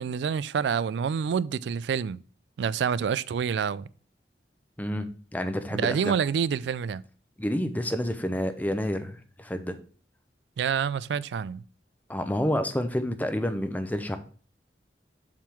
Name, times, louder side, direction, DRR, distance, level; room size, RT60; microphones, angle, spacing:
voice 1, 0.0-2.2 2.6-3.9 5.7-7.0 10.6-11.6, right 7 dB, 75° right, 0.3 m, -27 dB
voice 2, 4.8-6.2 7.4-9.8 12.1-14.2, equal, 10° left, 0.6 m, -29 dB
7.3 x 3.6 x 6.1 m
head